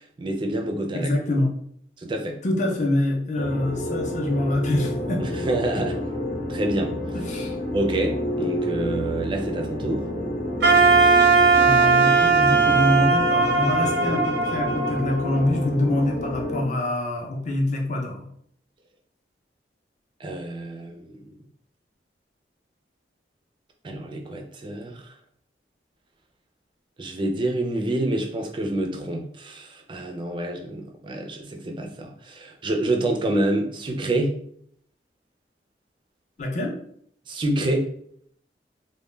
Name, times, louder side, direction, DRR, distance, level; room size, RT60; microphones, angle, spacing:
voice 1, 0.0-1.1 2.0-2.4 5.2-6.0 6.5-7.0 7.7-10.0 20.2-21.3 23.8-25.0 27.0-34.4 37.3-37.9, right 1 dB, 30° right, 3 dB, 0.3 m, -27 dB
voice 2, 0.9-1.5 2.4-5.4 5.8-5.9 7.1-7.5 11.6-18.3 36.4-36.7, left 1 dB, 45° left, 1 dB, 0.5 m, -25 dB
sound 1, 3.4-16.7, left 1 dB, 80° left, 0.9 m, -29 dB
Wind instrument woodwind instrument, 10.6-15.7, right 4 dB, 90° right, 0.6 m, -19 dB
2.1 x 2.1 x 3.1 m, 0.66 s
head